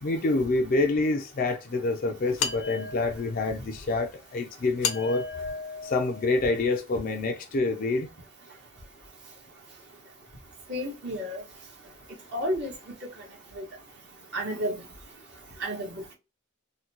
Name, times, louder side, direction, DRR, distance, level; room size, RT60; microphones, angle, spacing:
voice 1, 0.0-5.3 5.8-8.1, left 3 dB, 45° left, 0.4 m, -27 dB
sound 1, 2.4-3.5 4.8-6.7, left 6 dB, 80° left, 0.7 m, -34 dB
voice 2, 10.7-11.4 12.3-12.7 13.5-13.7 14.3-14.7 15.6-16.1, equal, 55° right, 1.2 m, -31 dB
3.7 x 2.2 x 2.9 m
head